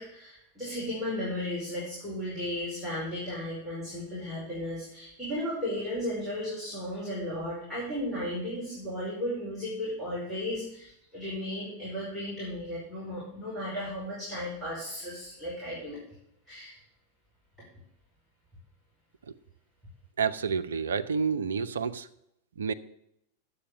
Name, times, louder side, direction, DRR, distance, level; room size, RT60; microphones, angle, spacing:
voice 1, 0.0-16.0 16.5-16.8, left 1 dB, ahead, -9 dB, 5.1 m, -35 dB
voice 2, 20.2-22.1 22.6-22.7, right 5 dB, 65° right, 11 dB, 0.6 m, -29 dB
10.0 x 8.0 x 6.8 m, 0.76 s
figure-of-eight pair, 90°, 0 cm